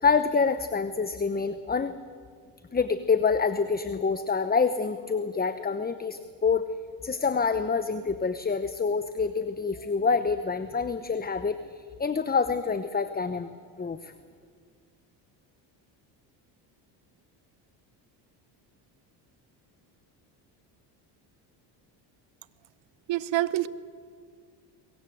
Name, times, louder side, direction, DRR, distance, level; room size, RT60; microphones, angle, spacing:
voice 1, 0.0-1.9 2.7-6.7 7.0-13.5 13.8-14.1, left 5 dB, 20° left, 12 dB, 1.0 m, -27 dB
voice 2, 23.1-23.7, right 15 dB, 60° right, 17 dB, 1.1 m, -26 dB
23.0 x 20.5 x 7.8 m, 2.1 s
supercardioid pair, 85°, 49 cm